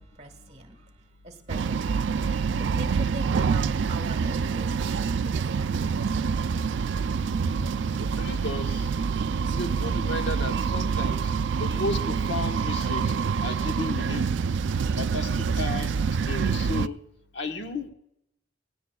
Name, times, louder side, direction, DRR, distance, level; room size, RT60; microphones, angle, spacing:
voice 1, 0.0-2.1 2.6-6.2, right 1 dB, 35° right, 6 dB, 1.5 m, -42 dB
sound 1, 1.5-16.9, right 5 dB, 75° right, 0.4 m, -26 dB
voice 2, 8.0-8.9 9.5-13.1 13.4-14.3 15.0-15.9 16.2-17.0 17.3-17.9, left 2 dB, 70° left, 5 dB, 1.2 m, -34 dB
18.0 x 16.5 x 2.3 m, 0.79 s
head